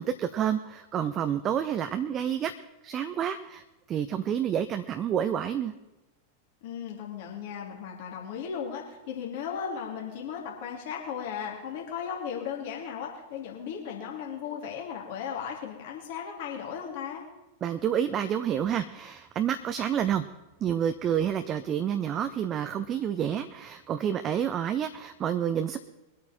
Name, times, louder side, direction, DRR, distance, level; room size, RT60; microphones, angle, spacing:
voice 1, 0.0-2.5 2.8-3.6 3.9-5.7 17.6-20.3 20.6-25.8, right 9 dB, 30° right, 9 dB, 0.7 m, -29 dB
voice 2, 6.6-17.2, left 7 dB, 50° left, -1 dB, 3.0 m, -36 dB
22.5 x 8.6 x 4.4 m, 1.0 s
figure-of-eight pair, 90°, 0 cm